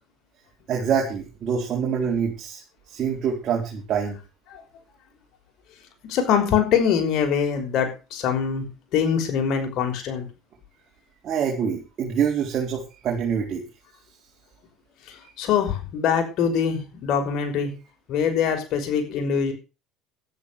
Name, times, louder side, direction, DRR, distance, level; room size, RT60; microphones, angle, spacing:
voice 1, 0.7-2.6 2.9-4.2 11.2-13.6, right 7 dB, 50° right, -1 dB, 4.9 m, -25 dB
voice 2, 6.0-8.7 8.9-10.3 15.4-17.7 18.1-19.5, left 7 dB, 60° left, 5 dB, 5.7 m, -23 dB
12.5 x 10.5 x 6.7 m, 0.32 s
supercardioid pair, 90°, 0 cm